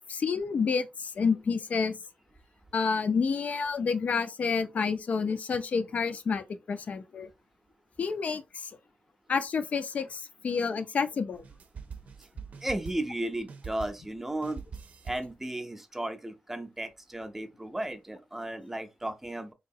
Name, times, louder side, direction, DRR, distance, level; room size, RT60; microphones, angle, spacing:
voice 1, 0.1-2.0 2.7-7.3 8.0-8.7 9.3-11.4, left 5 dB, 60° left, 0.5 m, -29 dB
sound 1, 11.3-13.2 13.5-14.2 14.4-15.4, right 5 dB, 60° right, 0.6 m, -44 dB
voice 2, 12.6-14.6 15.0-19.5, right 1 dB, 10° right, 0.6 m, -35 dB
3.8 x 2.9 x 2.7 m
wide cardioid pair, 135°, 3 cm